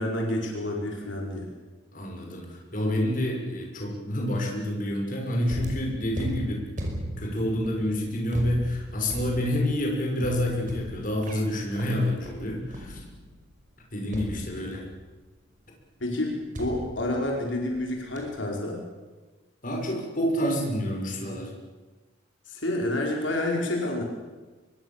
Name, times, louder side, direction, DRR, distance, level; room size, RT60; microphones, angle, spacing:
voice 1, 0.0-1.5 16.0-18.8 22.4-24.0, left 1 dB, 75° left, 0 dB, 5.0 m, -29 dB
voice 2, 1.9-6.6 7.2-13.0 13.9-14.8 19.6-21.5, left 1 dB, 45° left, 0 dB, 6.2 m, -28 dB
sound 1, 5.5-13.4 14.1-15.1 16.5-17.8 18.2-18.5, equal, 40° right, 5.5 m, -38 dB
25.0 x 22.0 x 7.4 m, 1.3 s
head